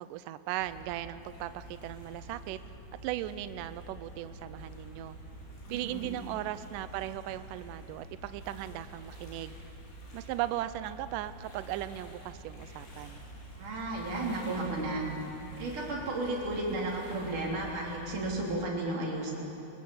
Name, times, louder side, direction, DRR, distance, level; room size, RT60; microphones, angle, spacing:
voice 1, 0.0-2.6 3.0-5.2 5.7-9.6 10.1-13.2, right 13 dB, 80° right, 13 dB, 2.0 m, -37 dB
sound 1, 0.6-18.5, right 1 dB, 85° left, 5.6 m, -48 dB
voice 2, 5.7-6.1 13.5-15.1 15.6-19.3, right 2 dB, 55° right, -2 dB, 4.8 m, -33 dB
22.5 x 20.5 x 7.1 m, 3.0 s
omnidirectional pair, 4.4 m